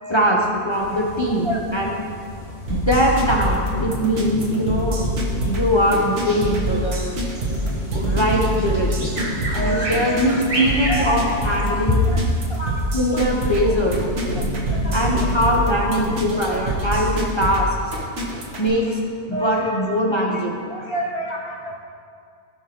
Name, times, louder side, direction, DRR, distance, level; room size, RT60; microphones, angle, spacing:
voice 1, 0.1-1.9 2.7-5.0 5.4-7.1 8.0-9.2 9.5-12.0 12.9-14.1 14.9-17.7 18.6-18.9 19.2-20.7, equal, 25° left, -3 dB, 0.8 m, -21 dB
sound 1, 0.7-17.3, equal, 70° left, 3.1 m, -32 dB
sound 2, 2.7-18.7, right 1 dB, 65° right, 1.5 m, -25 dB
Bird vocalization bird call bird song, 6.2-11.8, right 1 dB, 50° right, 2.1 m, -30 dB
voice 2, 9.5-10.3 10.9-11.2 11.7-11.8 12.1-12.2 12.6-12.8 13.1-13.2 14.7-14.9 19.3-19.8 20.1-20.2 20.7-21.8, right 1 dB, 25° right, -2 dB, 0.7 m, -28 dB
17.0 x 5.7 x 3.0 m, 2.3 s
omnidirectional pair, 1.3 m